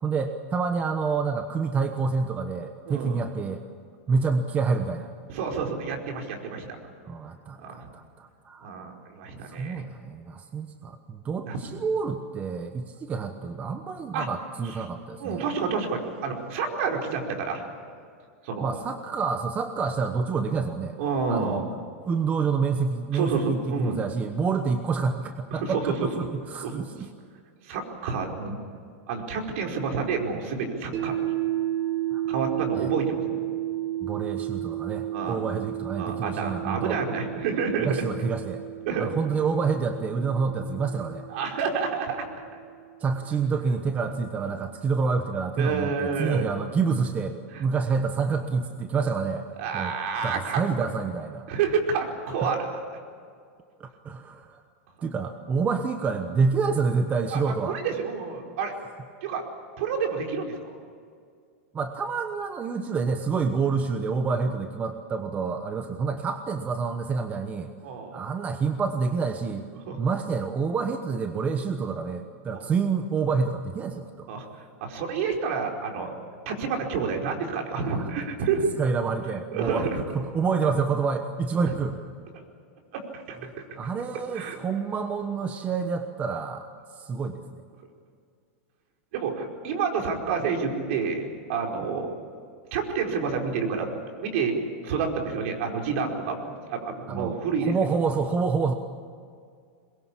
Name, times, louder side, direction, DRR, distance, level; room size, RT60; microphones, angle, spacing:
voice 1, 0.0-3.6 4.1-5.1 7.0-8.7 9.5-15.5 18.6-21.0 21.3-21.6 22.0-27.1 32.1-32.2 32.7-32.9 34.0-37.0 37.8-38.6 39.0-41.3 43.0-49.4 49.7-49.9 50.2-51.4 52.4-52.5 53.8-54.6 55.0-57.8 61.7-67.7 68.1-69.6 70.0-74.3 77.7-78.1 78.8-79.8 80.1-82.0 83.7-86.7 87.0-87.4 97.1-98.7, right 5 dB, 20° right, 7 dB, 1.1 m, -28 dB
voice 2, 2.9-3.2 5.3-6.7 7.6-7.9 8.6-9.8 11.5-11.6 14.1-14.3 15.2-17.6 18.4-18.7 21.0-21.6 23.1-24.0 25.5-26.1 26.6-26.7 27.6-28.6 29.1-31.3 32.3-33.4 35.1-35.4 35.9-38.0 38.9-39.1 41.3-42.4 45.6-46.4 47.5-47.6 49.6-50.6 51.5-52.8 57.3-58.7 59.2-59.4 59.8-60.5 67.8-68.2 69.9-70.0 72.5-72.6 74.3-76.1 76.4-78.7 79.5-80.0 81.7-81.8 82.3-82.4 82.9-83.4 84.3-84.6 89.1-92.1 92.7-93.9 94.2-94.5 94.8-97.7, right 5 dB, 60° right, 2 dB, 4.7 m, -29 dB
sound 1, 30.9-43.0, right 13 dB, 40° right, 4.2 m, -33 dB
22.5 x 22.0 x 8.6 m, 2.2 s
supercardioid pair, 150°, 8 cm